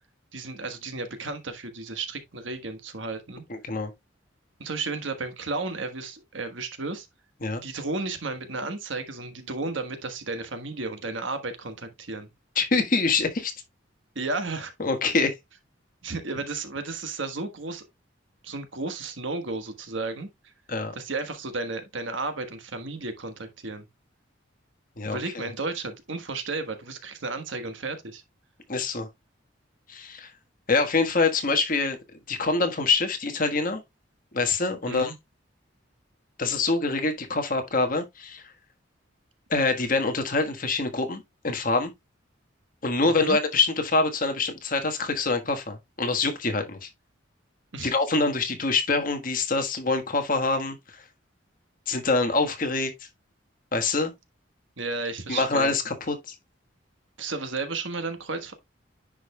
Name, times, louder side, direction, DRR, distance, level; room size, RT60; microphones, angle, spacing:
voice 1, 0.3-3.4 4.6-7.1 7.6-12.3 14.1-14.7 16.0-17.8 18.4-20.3 20.9-23.9 25.0-28.2 34.9-35.1 43.0-43.4 47.7-47.9 54.8-55.8 57.2-58.5, right 3 dB, 75° right, 1.3 m, -33 dB
voice 2, 3.5-3.9 7.4-7.6 12.5-13.5 14.8-15.4 20.7-20.9 25.0-25.5 28.7-29.1 29.9-30.3 30.7-32.0 32.3-33.8 34.3-35.1 36.4-38.5 39.5-41.9 42.8-46.9 47.8-51.0 51.9-52.9 53.7-54.1 55.3-56.3, left 3 dB, 45° left, 1.3 m, -25 dB
10.0 x 5.1 x 2.2 m
head